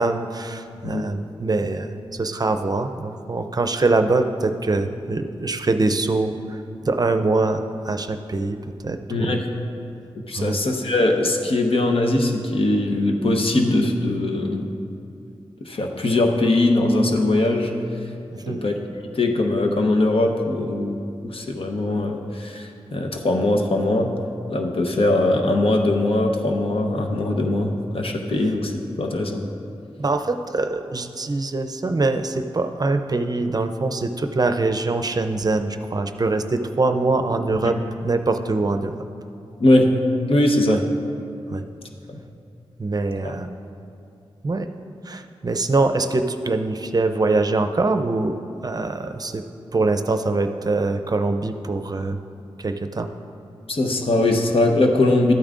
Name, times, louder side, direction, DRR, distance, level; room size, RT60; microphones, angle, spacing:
voice 1, 0.0-8.6 8.8-9.4 10.4-10.6 18.4-18.6 30.0-38.9 40.7-40.8 41.5-41.6 42.8-43.6 44.4-44.7 45.1-48.3 48.6-49.4 49.7-52.2 52.6-53.1, right 3 dB, 40° right, 8 dB, 0.5 m, -23 dB
voice 2, 9.1-9.4 10.3-14.7 15.7-17.7 18.5-18.7 19.1-24.1 24.5-28.7 29.0-29.5 37.6-37.7 39.6-40.0 40.3-40.8 42.1-42.2 43.2-43.3 53.7-55.3, left 2 dB, 60° left, 2 dB, 1.0 m, -21 dB
13.0 x 8.7 x 2.5 m, 2.5 s
cardioid pair, 50°, 10 cm